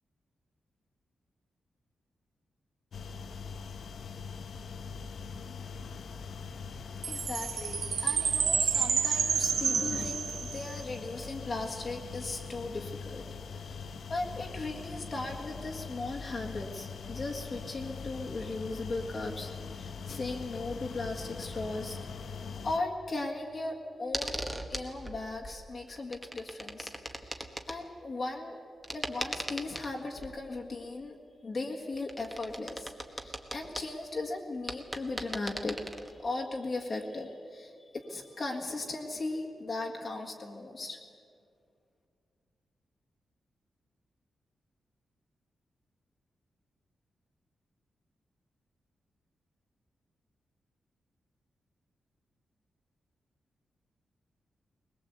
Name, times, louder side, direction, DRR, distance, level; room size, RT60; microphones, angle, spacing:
sound 1, 2.9-22.8, left 5 dB, 60° left, 0.9 m, -42 dB
voice 1, 7.0-13.2 13.5-13.8 14.1-22.0 22.6-24.4 24.7-28.6 28.9-31.2 31.4-41.0, left 2 dB, 35° left, 0 dB, 1.7 m, -37 dB
Chime, 7.0-10.7, right 6 dB, 70° right, 1.5 m, -29 dB
sound 2, 24.1-25.6 25.8-27.8 28.8-30.4 31.9-33.9 34.4-34.5 34.7-36.3 38.4-38.5, right 1 dB, 5° right, 1.4 m, -39 dB
21.5 x 21.0 x 8.2 m, 2.3 s
wide cardioid pair, 170°, 0 cm